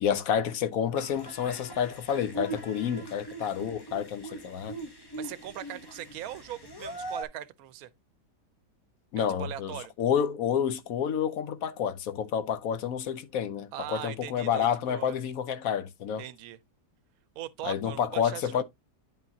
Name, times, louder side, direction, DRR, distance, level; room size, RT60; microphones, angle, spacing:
voice 1, 0.0-4.8 9.1-16.2 17.6-18.6, left 8 dB, 65° left, 0.9 m, -29 dB
sound 1, 0.9-7.2, right 2 dB, 30° left, 0.4 m, -41 dB
voice 2, 5.1-7.9 9.4-9.9 13.7-15.2 16.2-16.6 17.4-18.6, right 13 dB, 65° right, 1.0 m, -40 dB
9.1 x 5.4 x 2.7 m
omnidirectional pair, 1.8 m